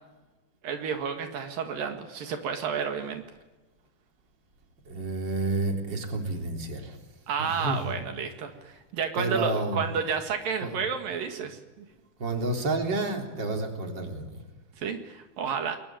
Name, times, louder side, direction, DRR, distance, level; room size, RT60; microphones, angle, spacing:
voice 1, 0.6-3.2 7.3-11.9 14.8-15.8, right 6 dB, 75° right, 6 dB, 3.6 m, -31 dB
voice 2, 4.9-7.0 7.4-7.9 9.1-9.8 10.6-10.8 12.2-14.4, right 2 dB, 30° right, 3 dB, 4.0 m, -30 dB
29.5 x 22.0 x 8.9 m, 1.2 s
omnidirectional pair, 4.1 m